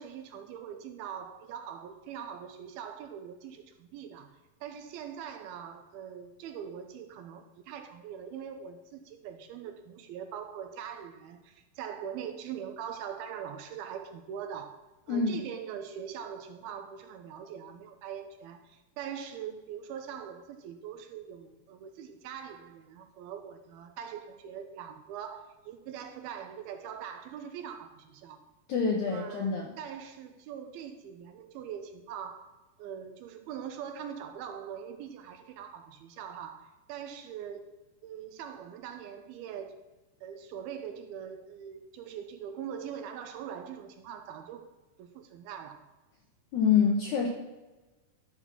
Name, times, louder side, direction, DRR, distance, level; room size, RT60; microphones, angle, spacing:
voice 1, 0.0-4.3 4.6-14.8 15.1-28.4 29.1-32.5 32.8-37.7 38.0-39.8 40.2-44.6 45.0-45.8, right 8 dB, 80° right, 7 dB, 2.4 m, -42 dB
voice 2, 28.7-29.7 46.5-47.3, left 6 dB, 80° left, 0 dB, 1.8 m, -26 dB
12.0 x 4.0 x 5.9 m, 1.1 s
omnidirectional pair, 4.6 m